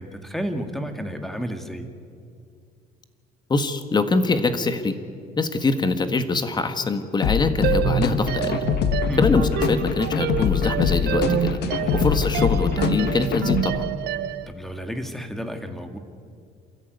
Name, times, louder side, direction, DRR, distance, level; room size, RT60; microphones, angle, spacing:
voice 1, 0.0-1.9 9.1-9.2 11.8-12.1 14.5-16.0, equal, ahead, 6 dB, 2.1 m, -31 dB
voice 2, 3.5-5.0 5.4-8.6 9.2-11.6 11.9-13.9, left 3 dB, 25° left, 9 dB, 1.7 m, -23 dB
sound 1, 7.2-13.6, left 7 dB, 80° left, 1.5 m, -24 dB
sound 2, 7.6-14.5, right 13 dB, 70° right, 0.7 m, -28 dB
27.5 x 14.5 x 9.6 m, 2.4 s
cardioid pair, 110°, 17 cm